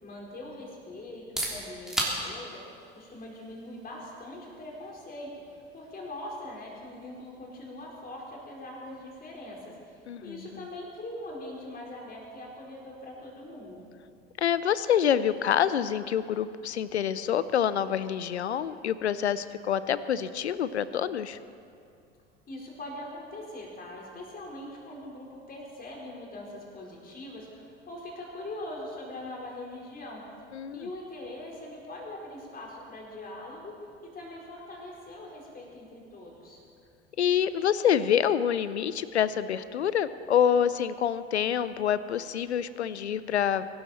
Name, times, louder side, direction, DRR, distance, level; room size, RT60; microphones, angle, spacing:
voice 1, 0.0-2.6 2.9-9.7 10.2-13.9 22.5-30.2 30.7-33.7 34.1-36.6, left 1 dB, 25° left, -2 dB, 4.5 m, -42 dB
sound 1, 1.1-16.7, right 1 dB, ahead, 3.6 m, -42 dB
voice 2, 10.1-10.6 14.4-21.4 30.5-30.9 37.2-43.6, left 9 dB, 80° left, 15 dB, 0.6 m, -27 dB
23.0 x 12.0 x 4.3 m, 2.4 s
figure-of-eight pair, 70°, 33 cm